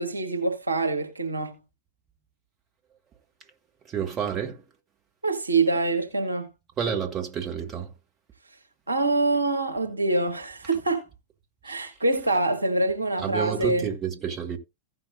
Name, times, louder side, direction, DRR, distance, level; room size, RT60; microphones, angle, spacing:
voice 1, 0.0-1.6 5.2-6.5 8.9-11.1 11.6-13.9, right 2 dB, 80° right, 1.4 m, -25 dB
voice 2, 3.9-4.6 6.8-7.9 11.7-11.8 13.2-14.6, right 8 dB, 30° right, 1.8 m, -29 dB
16.0 x 5.7 x 2.6 m
figure-of-eight pair, 90°, 0 cm